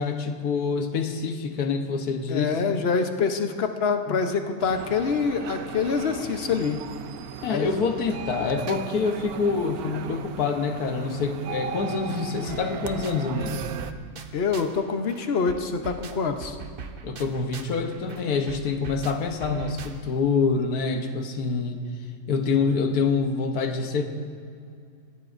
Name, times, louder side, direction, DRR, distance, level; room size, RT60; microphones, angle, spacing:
voice 1, 0.0-2.6 4.1-4.2 7.4-13.7 17.0-21.9 22.3-24.0, left 4 dB, 70° left, 6 dB, 1.5 m, -26 dB
voice 2, 2.3-6.8 7.5-7.7 14.3-16.6, left 5 dB, 45° left, 6 dB, 1.0 m, -25 dB
sound 1, 4.6-13.9, right 8 dB, 70° right, 1.1 m, -37 dB
sound 2, 11.8-11.9 12.1-14.8 15.1-20.3, right 5 dB, 45° right, 0.7 m, -41 dB
21.0 x 16.0 x 2.6 m, 2.4 s
omnidirectional pair, 1.7 m